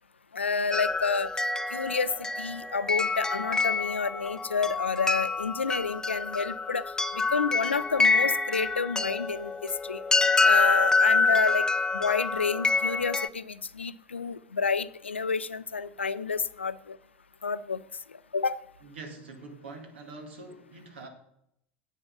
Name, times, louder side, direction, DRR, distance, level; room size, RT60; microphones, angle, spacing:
voice 1, 0.3-1.3 1.7-10.0 10.4-11.7 11.9-17.0 17.4-17.8 18.3-18.6, left 5 dB, 90° left, 17 dB, 0.4 m, -30 dB
sound 1, 0.7-13.3, left 4 dB, 10° left, 0.5 m, -26 dB
voice 2, 18.8-21.1, right 3 dB, 75° right, 5 dB, 2.1 m, -44 dB
9.9 x 8.0 x 5.3 m, 0.73 s
figure-of-eight pair, 75°, 6 cm